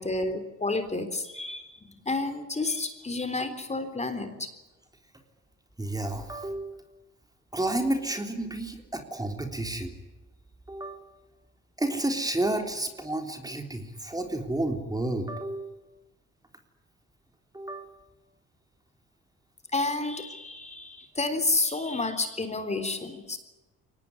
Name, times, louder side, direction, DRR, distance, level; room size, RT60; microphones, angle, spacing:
voice 1, 0.0-1.8 2.1-4.5 19.7-23.4, left 2 dB, 20° left, 9 dB, 3.7 m, -30 dB
voice 2, 5.8-6.7 7.5-9.9 10.7-11.0 11.8-15.7 17.5-17.9, right 1 dB, 10° right, 5 dB, 3.7 m, -31 dB
23.5 x 19.5 x 9.8 m, 1.1 s
cardioid pair, 90°, 30 cm